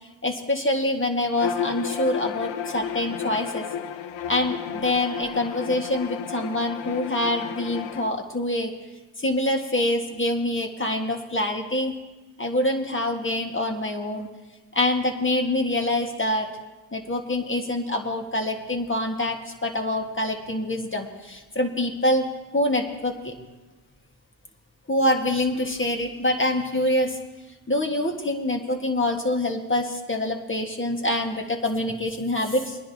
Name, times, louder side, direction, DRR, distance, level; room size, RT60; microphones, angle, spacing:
voice 1, 0.2-3.7 4.3-8.7 9.2-11.9 12.4-14.3 14.7-16.5 16.9-22.3 22.5-23.3 24.9-27.2 27.7-32.8, left 1 dB, 25° left, 3 dB, 1.7 m, -25 dB
Bowed string instrument, 1.3-8.1, left 8 dB, 75° left, 0.7 m, -32 dB
21.5 x 10.0 x 2.9 m, 1.2 s
supercardioid pair, 45°, 46 cm